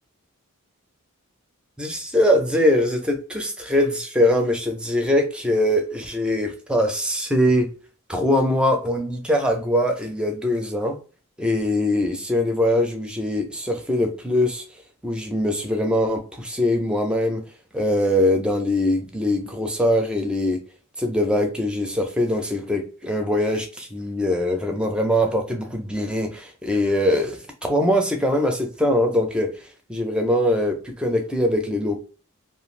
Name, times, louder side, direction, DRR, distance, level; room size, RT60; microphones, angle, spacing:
voice 1, 1.8-7.7 8.1-11.0 11.4-14.6 15.0-17.4 17.7-20.6 21.0-32.0, left 1 dB, 5° right, 3 dB, 0.5 m, -22 dB
2.5 x 2.3 x 3.1 m, 0.36 s
head